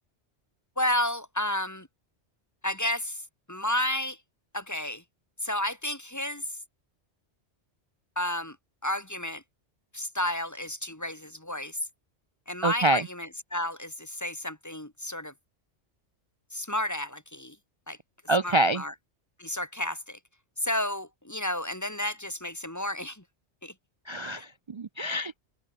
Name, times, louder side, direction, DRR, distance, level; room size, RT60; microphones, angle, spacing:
voice 1, 0.8-1.9 2.6-3.2 3.5-4.2 4.5-5.0 5.4-6.6 8.2-8.6 8.8-9.4 9.9-11.8 12.5-15.3 16.5-17.6 17.9-18.0 18.4-18.9 19.4-20.2 20.6-23.2 23.6-23.7 24.4-24.5, left 1 dB, 15° left, 1.9 m, -31 dB
voice 2, 12.6-13.1 18.3-18.8 24.1-25.4, right 2 dB, 40° right, 0.4 m, -26 dB
open air
omnidirectional pair, 1.2 m